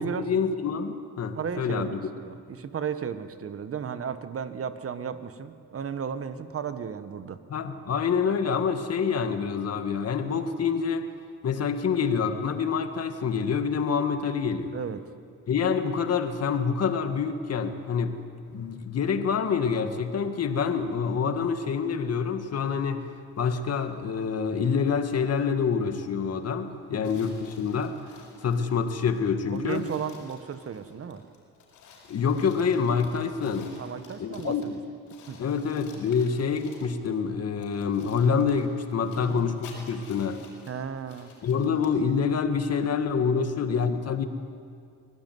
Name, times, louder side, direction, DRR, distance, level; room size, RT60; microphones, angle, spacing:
voice 1, 0.0-2.0 7.5-11.1 11.4-14.7 15.5-18.2 18.5-23.0 23.4-28.1 28.4-29.9 32.1-33.7 34.2-34.7 35.4-40.4 41.4-44.3, left 6 dB, 55° left, 7 dB, 2.0 m, -27 dB
voice 2, 1.3-7.4 14.7-15.0 26.9-27.2 29.5-31.2 33.8-34.8 35.3-35.4 39.2-39.4 40.7-41.3 43.3-43.9, right 7 dB, 50° right, 11 dB, 1.6 m, -35 dB
sound 1, 27.0-28.7 29.2-29.3 29.5-34.8 35.1-37.2 37.6-42.0, left 5 dB, 90° left, 6.6 m, -52 dB
25.0 x 18.0 x 9.5 m, 2.3 s
cardioid pair, 90°, 30 cm